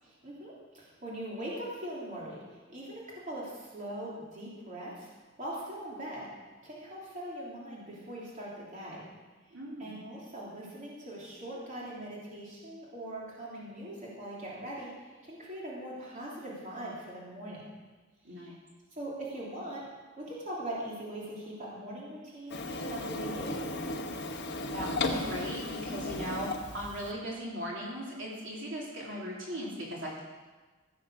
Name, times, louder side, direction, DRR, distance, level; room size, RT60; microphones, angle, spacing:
voice 1, 0.0-5.1 5.4-6.3 6.6-9.0 9.8-17.6 18.3-18.5 18.9-19.8 20.2-23.7, right 1 dB, 40° right, -6 dB, 3.2 m, -41 dB
voice 2, 9.5-10.0 18.2-18.6 24.7-30.2, equal, 65° right, -5 dB, 3.5 m, -38 dB
Printer, 22.5-27.1, left 2 dB, 55° left, 1.3 m, -35 dB
15.5 x 7.8 x 6.6 m, 1.3 s
head